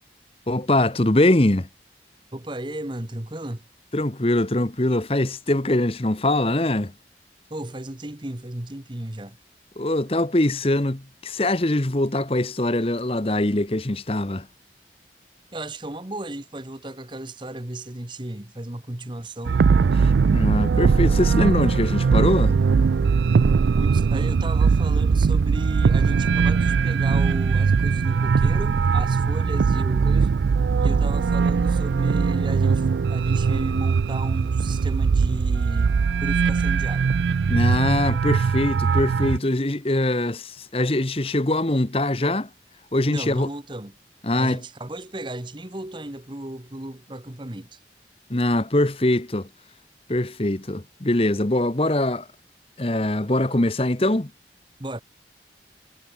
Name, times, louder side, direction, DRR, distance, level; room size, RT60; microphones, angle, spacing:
voice 1, 0.5-1.7 3.9-6.9 9.8-14.5 20.0-22.6 37.5-42.5 42.9-43.5 44.2-44.6 48.3-49.5 50.1-52.3 52.8-54.3, left 1 dB, 35° left, 1.1 m, -22 dB
voice 2, 2.3-3.6 7.5-9.4 15.5-19.6 23.8-30.3 30.8-37.1 43.1-44.0 44.4-47.8 54.8-55.0, right 1 dB, 25° right, 1.3 m, -35 dB
sound 1, 19.5-39.4, right 5 dB, 90° right, 0.4 m, -20 dB
head